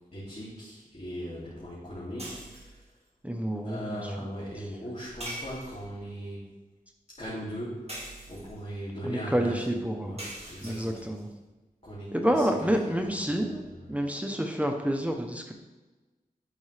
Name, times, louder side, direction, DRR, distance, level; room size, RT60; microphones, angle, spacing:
voice 1, 0.1-2.8 3.6-6.4 7.2-8.0 8.3-11.1 11.8-14.0, equal, 45° left, -9 dB, 2.8 m, -39 dB
sound 1, 2.2-2.8 5.2-6.1 7.9-8.7 10.2-11.2, right 1 dB, 40° right, 2.2 m, -42 dB
voice 2, 3.2-4.0 9.1-10.2 10.6-11.3 12.1-13.6 13.9-15.5, equal, 10° right, 3 dB, 0.9 m, -28 dB
12.0 x 5.3 x 3.4 m, 1.2 s
wide cardioid pair, 55°, 16 cm